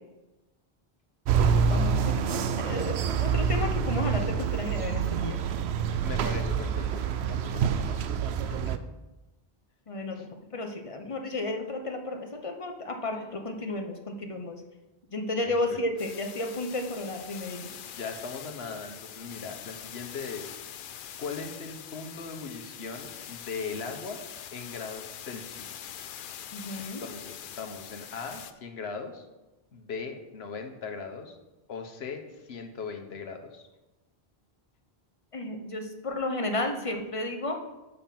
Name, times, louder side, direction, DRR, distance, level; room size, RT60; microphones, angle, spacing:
sound 1, 1.3-8.8, right 6 dB, 90° right, 0.8 m, -27 dB
voice 1, 1.4-5.4 9.9-14.6 15.1-17.7 26.5-27.0 35.3-37.6, left 2 dB, 35° left, 4 dB, 1.0 m, -33 dB
voice 2, 6.0-8.0 8.4-8.6 10.2-10.3 15.4-15.8 17.8-20.5 21.2-24.2 24.5-25.9 26.8-29.2 29.7-31.3 31.7-33.6, left 5 dB, 80° left, 5 dB, 1.2 m, -39 dB
sound 2, 16.0-28.5, left 9 dB, 60° left, 0.6 m, -44 dB
7.1 x 6.5 x 5.8 m, 1.1 s
omnidirectional pair, 1.1 m